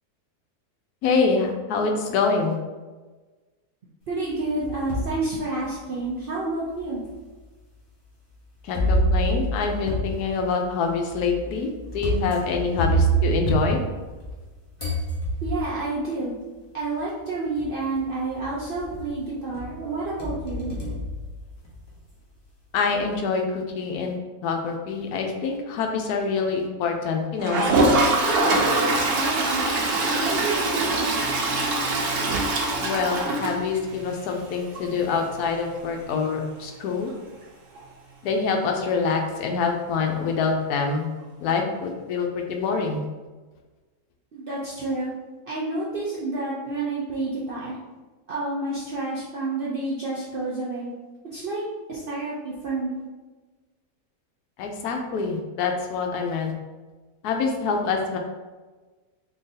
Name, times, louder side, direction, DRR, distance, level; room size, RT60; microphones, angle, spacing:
voice 1, 1.0-2.6 8.6-11.7 11.9-13.8 22.7-24.2 24.4-27.7 32.8-37.1 38.2-41.0 41.4-43.0 54.6-56.5 57.2-58.2, left 4 dB, 90° left, 3 dB, 1.1 m, -25 dB
voice 2, 4.1-7.0 12.7-12.9 14.8-14.9 15.4-16.3 16.7-20.8 29.1-29.7 30.1-31.2 44.3-45.1 45.5-47.8 48.3-50.9 51.3-51.6 51.9-53.0, right 2 dB, 65° right, -6 dB, 0.5 m, -29 dB
sound 1, 4.3-5.2 5.8-5.9 6.8-6.9 8.7-14.5 14.8-15.8 16.9-17.0 17.6-18.0 18.4-19.2 19.5-21.9, right 1 dB, 20° left, 0.8 m, -27 dB
Toilet flush, 27.4-34.1 34.4-34.5 34.7-34.8 35.1-35.2 37.7-37.8 39.1-39.2, right 2 dB, 85° right, 1.2 m, -23 dB
3.8 x 3.1 x 2.7 m, 1.3 s
omnidirectional pair, 1.6 m